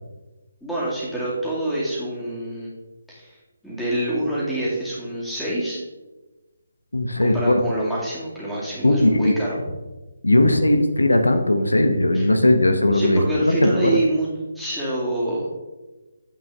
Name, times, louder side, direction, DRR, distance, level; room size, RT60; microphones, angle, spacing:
voice 1, 0.6-2.7 3.1-3.4 3.6-5.8 7.2-9.6 12.1-12.3 12.9-14.3 14.5-15.5, right 1 dB, ahead, -9 dB, 2.3 m, -26 dB
voice 2, 6.9-7.6 8.8-9.3 10.2-13.2 13.6-14.0, left 1 dB, 90° left, 7 dB, 0.8 m, -18 dB
8.9 x 5.1 x 3.5 m, 1.1 s
figure-of-eight pair, 150°, 0 cm